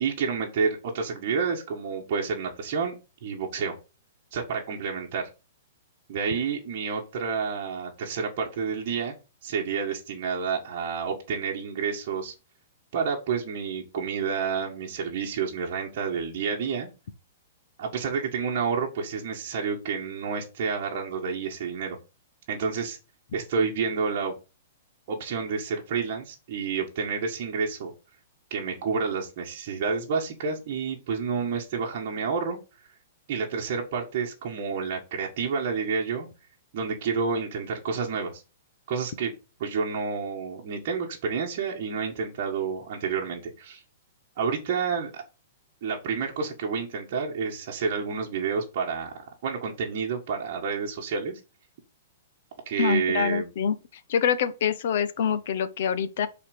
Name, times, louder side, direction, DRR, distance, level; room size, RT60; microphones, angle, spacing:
voice 1, 0.0-2.9 3.2-3.8 4.3-5.3 6.1-9.1 9.4-12.3 12.9-16.9 17.8-22.0 22.5-23.0 23.3-24.3 25.1-27.9 28.5-32.6 33.3-36.3 36.7-38.4 38.9-39.3 39.6-43.8 44.4-45.2 45.8-51.4 52.7-53.5, right 5 dB, 35° right, 1.9 m, -29 dB
voice 2, 52.8-53.8 54.1-56.3, left 7 dB, 45° left, 1.1 m, -25 dB
10.0 x 4.2 x 6.7 m
hypercardioid pair, 180°, 0 cm